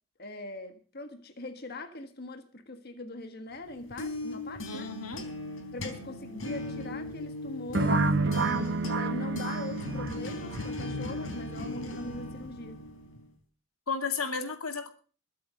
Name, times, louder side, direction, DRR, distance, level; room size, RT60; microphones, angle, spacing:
voice 1, 0.2-4.9 5.7-12.8, left 2 dB, 45° left, 1.6 m, -41 dB
sound 1, 3.6-13.3, left 1 dB, 70° left, 3.9 m, -38 dB
voice 2, 4.7-5.3 13.9-14.9, left 5 dB, 85° left, 2.3 m, -33 dB
sound 2, 7.7-10.6, right 3 dB, 55° right, 1.1 m, -28 dB
22.0 x 8.0 x 6.4 m
head